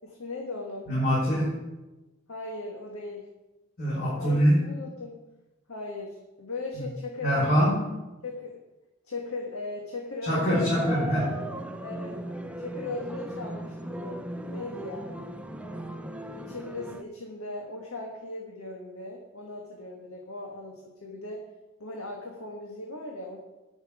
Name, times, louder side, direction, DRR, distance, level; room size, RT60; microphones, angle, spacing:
voice 1, 0.0-0.9 2.3-3.3 4.2-5.2 5.7-7.7 8.2-8.6 9.0-11.4 11.8-12.2 12.6-15.3 16.3-21.4 21.8-23.4, left 3 dB, 85° left, 0 dB, 1.7 m, -38 dB
voice 2, 0.9-1.6 3.8-4.7 6.7-6.9 7.2-7.8 10.2-11.2, equal, 45° left, -8 dB, 5.1 m, -24 dB
sound 1, 10.5-17.0, right 1 dB, 5° right, 0.5 m, -37 dB
10.5 x 6.3 x 8.8 m, 1.1 s
head